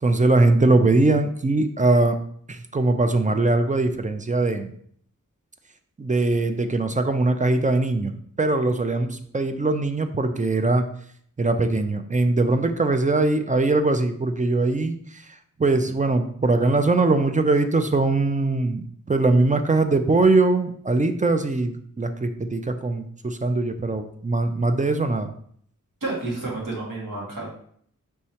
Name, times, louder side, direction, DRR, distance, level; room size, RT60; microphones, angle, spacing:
voice 1, 0.0-2.2 2.5-4.7 6.0-8.1 8.4-10.9 11.4-15.2 15.6-18.8 19.1-25.3, right 2 dB, 25° right, 8 dB, 0.4 m, -21 dB
voice 2, 26.0-27.5, right 2 dB, 80° right, -4 dB, 1.5 m, -30 dB
4.6 x 3.1 x 2.8 m, 0.62 s
wide cardioid pair, 55°, 32 cm